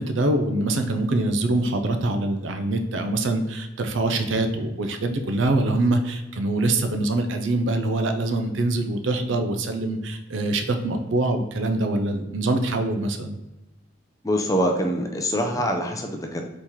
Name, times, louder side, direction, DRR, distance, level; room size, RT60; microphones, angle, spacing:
voice 1, 0.0-13.4, right 2 dB, 70° right, 7 dB, 0.5 m, -24 dB
voice 2, 14.2-16.5, equal, 15° left, 3 dB, 0.4 m, -24 dB
4.2 x 3.1 x 3.6 m, 0.98 s
head